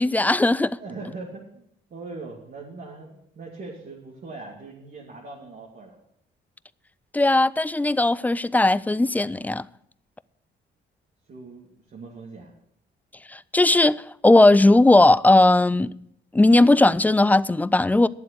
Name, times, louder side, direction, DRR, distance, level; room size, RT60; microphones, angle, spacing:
voice 1, 0.0-0.8 7.1-9.6 13.3-15.9 16.3-18.1, left 2 dB, 10° left, 0.3 m, -18 dB
voice 2, 0.8-1.7 1.9-6.0 11.3-12.5, right 3 dB, 50° right, 2.4 m, -40 dB
11.0 x 7.6 x 6.8 m
cardioid pair, 90°, 20 cm